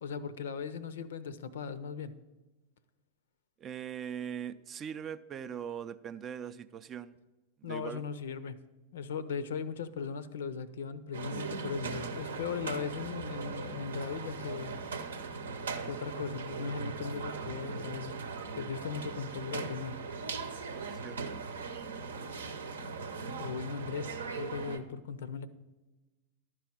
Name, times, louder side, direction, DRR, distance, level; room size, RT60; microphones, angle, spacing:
voice 1, 0.0-2.1 7.6-8.6 8.9-14.8 15.8-18.2 18.5-20.0 23.4-25.5, left 6 dB, 60° left, 16 dB, 0.6 m, -38 dB
voice 2, 3.6-7.1 7.6-8.0 20.7-21.4, right 8 dB, 25° right, 12 dB, 0.4 m, -41 dB
sound 1, 11.1-24.8, right 4 dB, 70° right, 0.8 m, -39 dB
11.5 x 4.8 x 7.3 m, 1.2 s
figure-of-eight pair, 90°, 0 cm